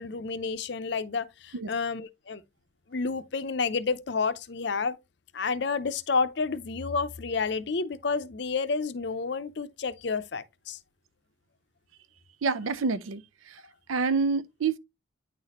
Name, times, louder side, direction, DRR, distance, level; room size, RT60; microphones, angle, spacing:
voice 1, 0.0-2.4 2.9-5.0 5.3-10.8, left 4 dB, 55° left, 0.6 m, -30 dB
voice 2, 12.4-13.2 13.5-13.6 13.9-14.8, right 4 dB, 85° right, 0.5 m, -27 dB
9.1 x 4.1 x 2.9 m
head